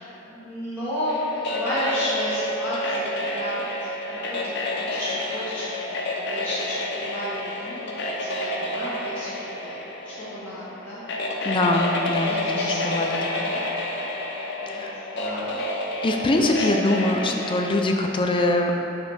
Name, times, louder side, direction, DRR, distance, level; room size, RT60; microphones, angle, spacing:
voice 1, 0.0-3.7 4.1-7.8 8.2-9.3 9.6-9.8 10.2-11.0 12.3-12.7 13.2-13.6 14.6-14.8 15.1-15.6 16.2-16.7 17.1-17.3, equal, 10° left, -14 dB, 1.2 m, -32 dB
sound 1, 1.1-17.7, left 2 dB, 60° left, 0.7 m, -30 dB
Chink clink, 1.5-5.9, right 1 dB, 30° right, 1.0 m, -34 dB
voice 2, 11.4-13.1 14.7-14.9 16.0-18.7, left 2 dB, 25° left, 2 dB, 0.4 m, -23 dB
5.8 x 3.3 x 5.5 m, 2.9 s
head